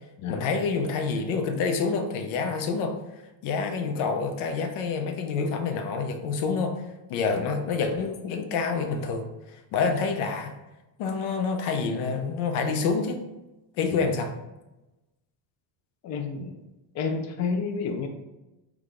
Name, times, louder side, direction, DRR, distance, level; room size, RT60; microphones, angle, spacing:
voice 1, 0.3-2.9 3.4-6.8 7.1-10.5 11.0-13.2 13.8-14.3, left 4 dB, 80° left, 5 dB, 0.8 m, -27 dB
voice 2, 16.0-16.5 16.9-18.1, left 5 dB, 35° left, 4 dB, 0.4 m, -30 dB
4.8 x 2.4 x 3.8 m, 1.0 s
cardioid pair, 145°, 48 cm